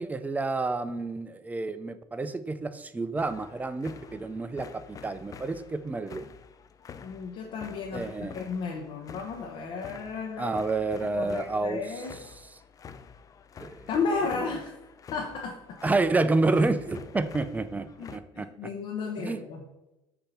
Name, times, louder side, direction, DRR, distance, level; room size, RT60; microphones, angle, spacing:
voice 1, 0.0-6.3 7.9-8.4 10.4-11.8 13.6-13.9 15.8-18.5 19.2-19.4, right 3 dB, 15° right, 11 dB, 0.5 m, -29 dB
sound 1, 3.2-18.2, left 6 dB, 35° left, 0.5 m, -48 dB
voice 2, 7.0-10.6 11.2-12.1 13.9-14.7 15.1-15.5 18.0-19.7, left 4 dB, 70° left, -1 dB, 1.0 m, -33 dB
6.8 x 2.9 x 5.6 m, 0.95 s
supercardioid pair, 90°, 10 cm